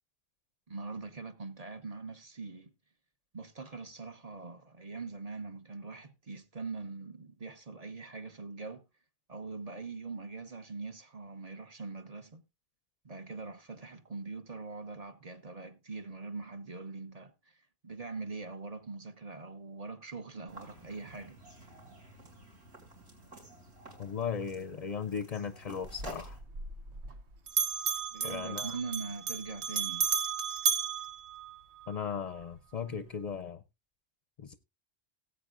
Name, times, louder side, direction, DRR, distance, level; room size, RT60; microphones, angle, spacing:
voice 1, 0.7-2.7 3.3-8.8 9.3-12.4 13.0-21.4 28.1-30.1, right 4 dB, 40° right, 1.0 m, -42 dB
sound 1, 20.5-26.4, right 2 dB, 75° right, 4.7 m, -51 dB
voice 2, 24.0-26.4 28.2-28.8 31.9-33.6 34.4-34.5, left 7 dB, 45° left, 0.6 m, -37 dB
Bell, 25.8-27.2 27.5-32.0, right 7 dB, 90° right, 1.3 m, -33 dB
18.0 x 8.2 x 2.5 m
omnidirectional pair, 1.1 m